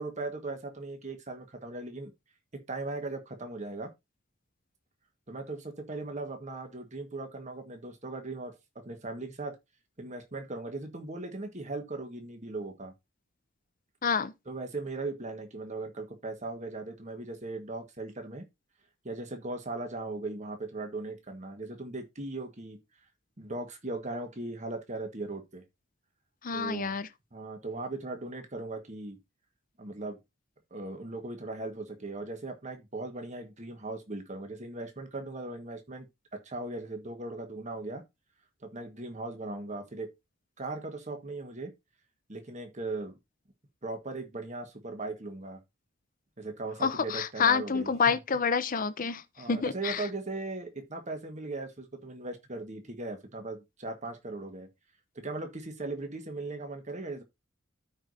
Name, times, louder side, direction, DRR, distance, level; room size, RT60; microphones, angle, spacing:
voice 1, 0.0-2.1 2.7-3.9 5.3-8.5 8.8-9.6 10.0-12.9 14.5-18.5 19.0-22.8 23.4-25.6 26.5-26.9 27.3-29.2 29.8-30.2 30.7-36.1 36.4-38.0 38.6-40.1 40.6-41.7 42.3-43.2 43.8-45.6 46.4-47.9 49.4-54.7 55.2-57.2, right 2 dB, 35° right, 1.6 m, -38 dB
voice 2, 14.0-14.3 26.4-27.1 46.8-49.2 49.5-50.0, left 6 dB, 45° left, 0.6 m, -28 dB
13.5 x 4.9 x 2.7 m
head